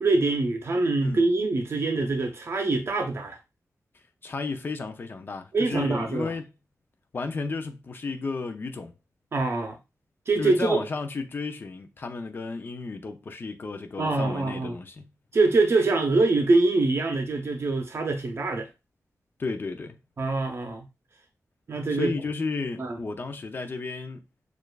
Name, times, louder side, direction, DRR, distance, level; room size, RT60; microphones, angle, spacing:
voice 1, 0.0-3.4 5.5-6.3 9.3-9.8 10.3-10.8 14.0-14.7 15.3-18.7 20.2-20.9 21.7-22.1 22.8-23.0, right 3 dB, 50° right, 0.6 m, -24 dB
voice 2, 3.9-6.5 7.1-8.9 10.4-15.0 19.4-20.0 21.9-24.2, left 4 dB, 40° left, 0.5 m, -33 dB
6.5 x 2.4 x 2.3 m
wide cardioid pair, 150°, 6 cm